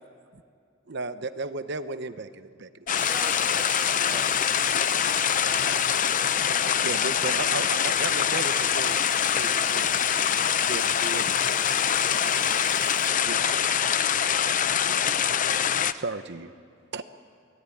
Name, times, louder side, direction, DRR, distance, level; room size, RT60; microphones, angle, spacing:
voice 1, 0.9-2.9 6.8-9.0 9.3-10.4 10.7-11.3 13.3-13.4 14.9-15.1 15.9-16.5 16.9-17.0, right 3 dB, 55° right, 10 dB, 0.9 m, -35 dB
sound 1, 2.9-15.9, left 8 dB, 40° left, 0.6 m, -24 dB
voice 2, 3.0-4.3, equal, 5° left, -2 dB, 4.2 m, -47 dB
sound 2, 3.0-13.1, right 7 dB, 40° right, 3.1 m, -45 dB
voice 3, 10.7-12.5 12.8-14.4, left 1 dB, 55° left, 2 dB, 6.3 m, -50 dB
28.5 x 18.5 x 9.9 m, 2.3 s
head